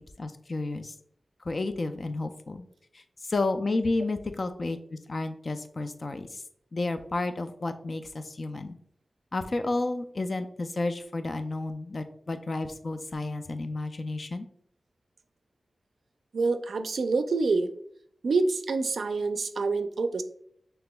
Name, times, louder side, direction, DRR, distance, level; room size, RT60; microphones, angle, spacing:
voice 1, 0.2-0.9 1.4-2.6 2.9-6.4 6.7-8.8 9.3-14.5, left 2 dB, 45° left, 8 dB, 0.4 m, -31 dB
voice 2, 16.3-17.7 18.2-20.2, right 3 dB, 90° right, 9 dB, 0.3 m, -26 dB
6.0 x 3.3 x 2.2 m, 0.67 s
wide cardioid pair, 105°, 0 cm